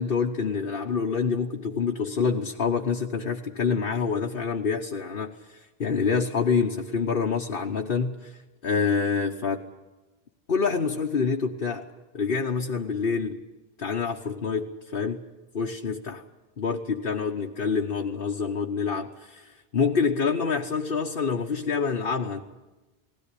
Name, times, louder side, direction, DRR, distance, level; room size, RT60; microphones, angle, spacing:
voice 1, 0.0-9.6 10.5-11.9 12.1-13.4 13.8-15.2 15.5-16.2 16.6-22.4, left 5 dB, 50° left, 1 dB, 1.3 m, -27 dB
20.0 x 17.0 x 10.0 m, 1.1 s
omnidirectional pair, 1.2 m